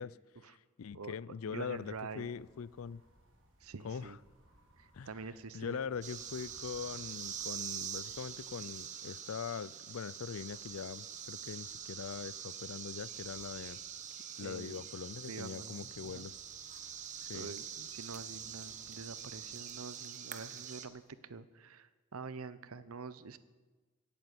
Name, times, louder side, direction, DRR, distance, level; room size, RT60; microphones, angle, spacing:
voice 1, 0.0-3.0 3.8-4.2 4.9-5.1 5.5-13.8 14.4-16.4 17.2-17.5, left 6 dB, 80° left, 0.4 m, -42 dB
sound 1, 1.5-21.1, equal, 55° right, 4.3 m, -68 dB
voice 2, 1.5-2.3 3.6-4.2 4.8-5.8 14.4-14.8 15.3-16.2 17.3-23.4, right 4 dB, 85° right, 0.8 m, -46 dB
sound 2, 6.0-20.9, right 8 dB, 35° right, 1.0 m, -45 dB
17.5 x 8.8 x 8.3 m
head